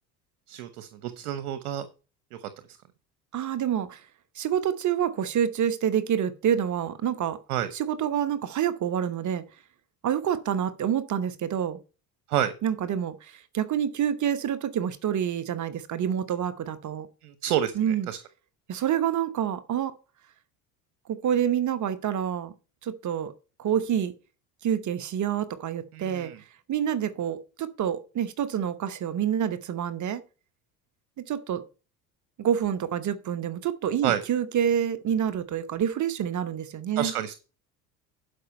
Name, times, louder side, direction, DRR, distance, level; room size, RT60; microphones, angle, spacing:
voice 1, 0.5-1.9 2.4-2.5 7.5-7.7 12.3-12.5 17.2-18.2 25.9-26.4 34.0-34.2 37.0-37.3, right 11 dB, 75° right, 1.0 m, -29 dB
voice 2, 3.3-4.0 4.3-7.4 7.7-9.4 10.0-11.8 12.6-17.1 17.7-18.1 18.7-19.9 21.1-22.5 22.8-23.3 23.6-24.1 24.6-26.3 26.7-30.2 31.3-31.6 32.4-37.1, right 9 dB, 40° right, 1.1 m, -27 dB
11.5 x 5.3 x 4.3 m
hypercardioid pair, 75°, 44 cm